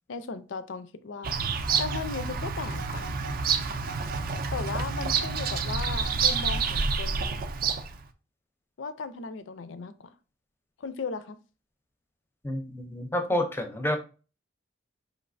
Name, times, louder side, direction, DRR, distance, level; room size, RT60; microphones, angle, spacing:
voice 1, 0.1-1.4 1.8-3.1 4.5-7.4 8.8-10.1 10.8-11.4, left 5 dB, 65° left, 0.4 m, -36 dB
Bird vocalization bird call bird song, 1.2-8.0, right 5 dB, 45° right, 0.4 m, -28 dB
Telephone, 1.6-2.3 2.7-3.4 3.8-4.5 4.9-6.9, right 4 dB, 70° right, 0.7 m, -45 dB
voice 2, 12.4-14.0, left 1 dB, 10° left, 0.5 m, -29 dB
5.1 x 3.2 x 2.5 m
head